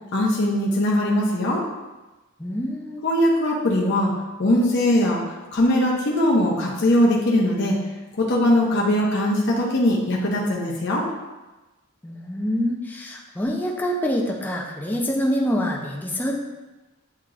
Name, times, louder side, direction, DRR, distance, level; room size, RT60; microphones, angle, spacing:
voice 1, 0.1-1.6 3.0-4.1 4.4-5.2 5.5-7.8 8.2-11.1, left 1 dB, 55° left, -4 dB, 0.7 m, -20 dB
voice 2, 2.4-3.0 12.0-16.3, equal, 10° left, -1 dB, 0.5 m, -26 dB
7.3 x 2.9 x 2.5 m, 1.1 s
head